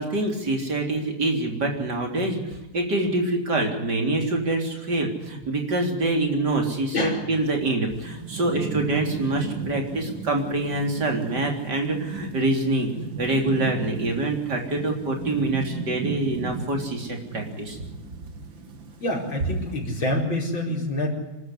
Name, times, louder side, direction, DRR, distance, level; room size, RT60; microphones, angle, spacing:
voice 1, 0.0-12.9 13.2-17.8, right 2 dB, 60° right, 3 dB, 4.1 m, -25 dB
voice 2, 6.9-7.3 19.0-21.1, left 1 dB, 85° left, 0 dB, 5.6 m, -26 dB
Thunderstorm / Rain, 7.9-20.1, right 5 dB, 80° right, 2.4 m, -36 dB
26.5 x 12.5 x 9.9 m, 1.0 s
omnidirectional pair, 2.1 m